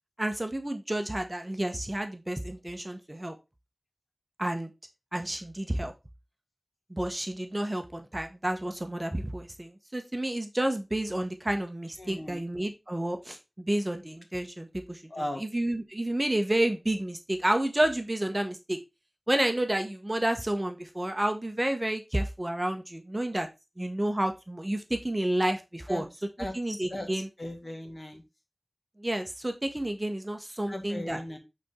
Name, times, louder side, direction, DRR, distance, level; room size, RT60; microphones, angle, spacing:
voice 1, 0.2-3.3 4.4-4.7 5.1-5.9 6.9-18.8 19.3-23.5 23.8-26.1 26.5-27.3 29.0-31.2, right 1 dB, 25° right, 6 dB, 1.0 m, -30 dB
voice 2, 12.0-12.4 15.1-15.4 25.9-26.0 26.4-28.2 30.7-31.4, left 1 dB, 40° left, 4 dB, 1.9 m, -37 dB
8.4 x 4.2 x 3.7 m, 0.24 s
wide cardioid pair, 55°, 0 cm